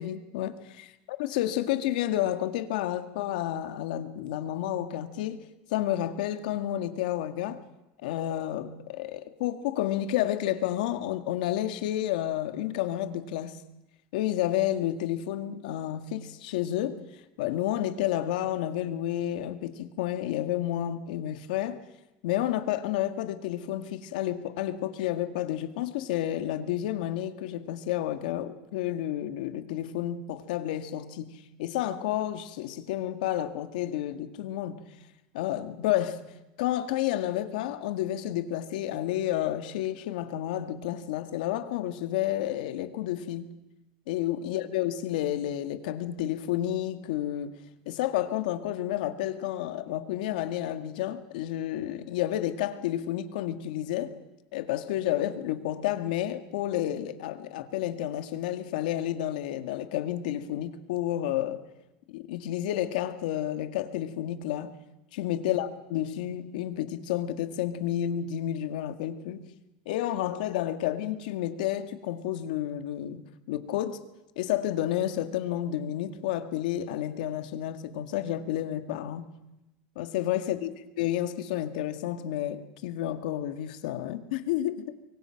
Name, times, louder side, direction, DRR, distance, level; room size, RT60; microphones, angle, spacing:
voice 1, 0.0-5.4 5.7-7.6 8.0-13.6 14.1-17.0 17.4-21.8 22.2-31.3 31.6-34.7 35.3-36.2 36.6-43.5 44.1-47.6 47.9-54.1 54.5-61.6 62.1-64.7 65.1-69.4 69.9-74.0 74.4-79.2 80.0-80.7 81.0-84.9, left 12 dB, 90° left, 9 dB, 1.9 m, -30 dB
26.5 x 23.5 x 5.9 m, 0.96 s
cardioid pair, 155°, 4 cm